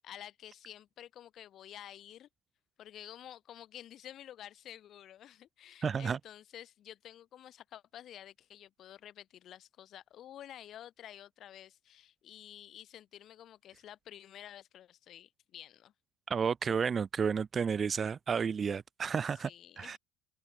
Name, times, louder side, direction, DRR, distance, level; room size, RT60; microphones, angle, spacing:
voice 1, 0.0-2.3 2.8-15.9 19.4-20.0, left 11 dB, 45° left, 2.6 m, -51 dB
voice 2, 5.8-6.2 16.3-19.5 19.8-20.0, right 6 dB, 25° right, 0.6 m, -31 dB
open air
cardioid pair, 125°, 0 cm